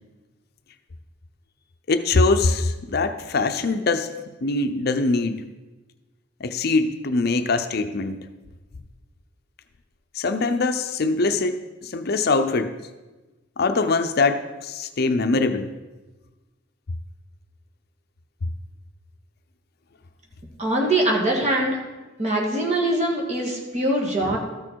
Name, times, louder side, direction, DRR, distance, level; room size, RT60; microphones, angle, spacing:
voice 1, 1.9-5.4 6.4-8.2 10.1-12.7 13.6-15.7 24.2-24.4, left 3 dB, 55° left, 8 dB, 0.6 m, -23 dB
voice 2, 20.6-21.8 22.2-24.4, right 1 dB, 35° right, -1 dB, 1.9 m, -22 dB
13.5 x 6.5 x 4.6 m, 1.2 s
head